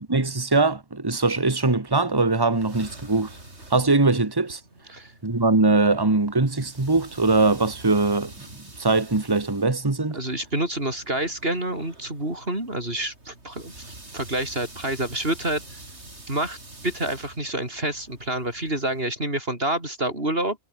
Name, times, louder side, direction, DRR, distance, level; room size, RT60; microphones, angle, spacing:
voice 1, 0.1-3.4 3.7-4.6 5.2-8.4 8.8-10.2, right 3 dB, 20° right, 1.7 m, -21 dB
sound 1, 2.3-19.0, right 2 dB, 90° right, 5.6 m, -46 dB
voice 2, 10.1-13.7 14.1-15.6 16.3-16.6 16.8-20.6, right 1 dB, 60° right, 6.4 m, -28 dB
omnidirectional pair, 1.1 m